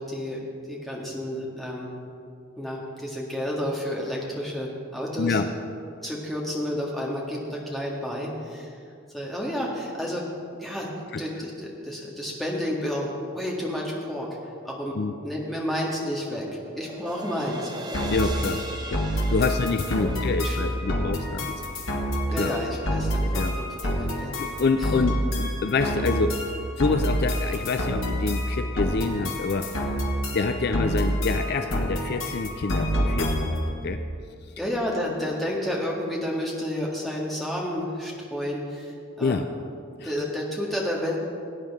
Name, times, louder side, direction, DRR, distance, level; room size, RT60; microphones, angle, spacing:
voice 1, 0.0-1.9 2.6-5.4 6.0-8.7 9.1-10.3 10.5-10.9 11.2-14.3 14.6-15.0 15.2-16.5 16.8-17.7 18.3-18.5 19.4-19.6 20.0-20.7 22.3-24.3 24.8-24.9 34.6-39.5 40.0-41.2, equal, ahead, -4 dB, 1.7 m, -31 dB
sound 1, 16.0-21.8, right 1 dB, 20° right, 0.6 m, -41 dB
sound 2, 17.9-33.7, equal, 85° left, 1.7 m, -27 dB
voice 2, 18.1-21.5 22.4-22.5 23.2-23.5 24.4-26.4 26.8-29.7 30.3-33.6 33.8-34.0 39.2-39.4 40.0-40.1, left 4 dB, 50° left, 7 dB, 0.4 m, -27 dB
18.0 x 9.1 x 3.6 m, 2.4 s
head